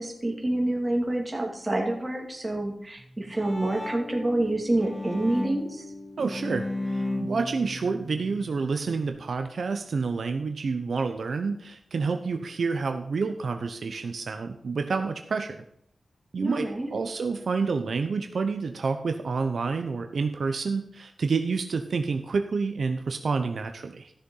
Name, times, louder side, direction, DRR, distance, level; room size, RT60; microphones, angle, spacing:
voice 1, 0.0-5.8 16.4-16.9, right 1 dB, 20° right, 1 dB, 2.7 m, -27 dB
Bowed string instrument, 3.0-9.1, left 2 dB, 10° left, 1.5 m, -35 dB
voice 2, 6.2-15.6 16.3-24.1, right 4 dB, 70° right, 6 dB, 0.8 m, -29 dB
14.0 x 6.8 x 5.6 m, 0.71 s
wide cardioid pair, 110°, 0 cm